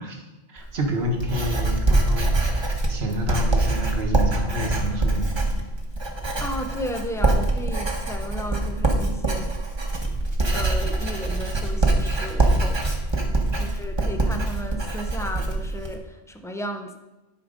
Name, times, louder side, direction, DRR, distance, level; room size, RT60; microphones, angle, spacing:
voice 1, 0.0-5.4 13.5-13.8, equal, 65° right, 2 dB, 1.4 m, -29 dB
Writing, 0.6-15.9, right 2 dB, 25° right, 1.1 m, -24 dB
voice 2, 6.4-9.5 10.5-13.0 13.6-17.0, equal, 5° left, 4 dB, 0.4 m, -34 dB
11.5 x 5.0 x 5.1 m, 1.1 s
omnidirectional pair, 1.2 m